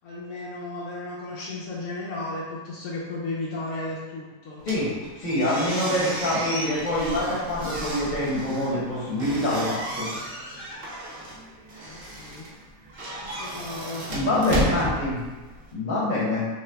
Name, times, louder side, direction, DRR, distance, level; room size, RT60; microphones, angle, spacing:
voice 1, 0.0-4.6 11.8-12.5 13.2-14.1, left 2 dB, 70° left, -6 dB, 1.0 m, -34 dB
sound 1, 4.6-15.7, right 1 dB, 55° right, 0.7 m, -34 dB
voice 2, 5.2-10.1 14.1-15.2 15.7-16.5, left 1 dB, 35° left, -6 dB, 0.8 m, -25 dB
3.1 x 2.2 x 3.3 m, 1.2 s
omnidirectional pair, 1.7 m